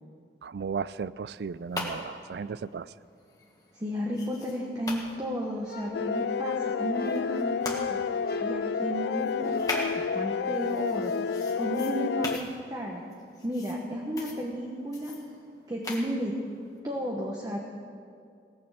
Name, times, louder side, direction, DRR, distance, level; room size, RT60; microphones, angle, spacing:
voice 1, 0.4-2.9, right 5 dB, 70° right, 18 dB, 0.3 m, -35 dB
sound 1, 1.4-7.8 8.3-16.8, left 2 dB, 20° left, 1.7 m, -42 dB
voice 2, 3.7-11.2 11.5-13.0 13.4-15.2 15.7-16.3 16.8-17.6, equal, 20° right, -2 dB, 1.1 m, -33 dB
sound 2, 5.6-6.5 6.9-7.5 8.2-10.0, left 1 dB, 55° left, 1.1 m, -42 dB
sound 3, 5.9-12.4, left 6 dB, 75° left, 0.3 m, -30 dB
17.5 x 6.9 x 8.0 m, 2.3 s
head